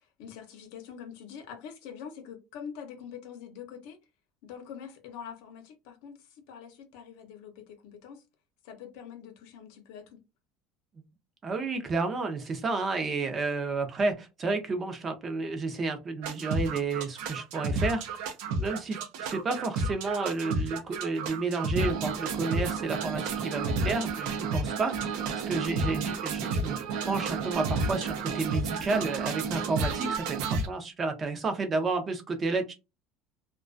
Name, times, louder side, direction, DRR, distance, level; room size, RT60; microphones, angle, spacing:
voice 1, 0.0-4.0 4.4-8.2 8.6-10.2, left 7 dB, 75° left, 0.6 m, -45 dB
voice 2, 11.4-18.2 18.6-26.8 27.1-32.7, right 3 dB, 25° right, 0.5 m, -31 dB
sound 1, 16.2-30.7, right 3 dB, 75° right, 0.5 m, -31 dB
2.3 x 2.2 x 2.4 m
cardioid pair, 145°, 0 cm